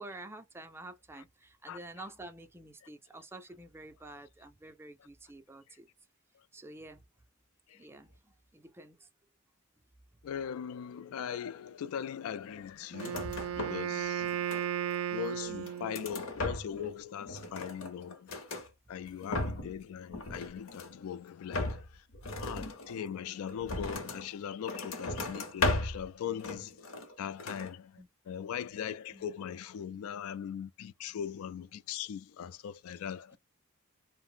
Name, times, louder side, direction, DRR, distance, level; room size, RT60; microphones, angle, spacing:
voice 1, 0.0-5.9 6.5-7.0 7.7-9.1 18.9-19.0 28.0-28.1 29.1-29.2, right 2 dB, 10° right, 0.4 m, -49 dB
voice 2, 1.7-2.1 2.8-2.9 5.7-5.8 7.7-7.9 10.2-14.3 15.1-18.3 18.9-22.1 22.4-26.8 27.2-33.4, left 8 dB, 85° left, 0.3 m, -40 dB
sound 1, 12.9-13.9 14.2-15.0 15.5-16.9 17.2-18.7 19.1-19.8 20.1-21.0 21.5-24.3 24.7-26.1 26.4-27.1 27.4-27.7, left 2 dB, 65° left, 0.7 m, -36 dB
Wind instrument woodwind instrument, 12.9-16.2, right 10 dB, 90° right, 0.4 m, -35 dB
2.4 x 2.0 x 3.7 m
head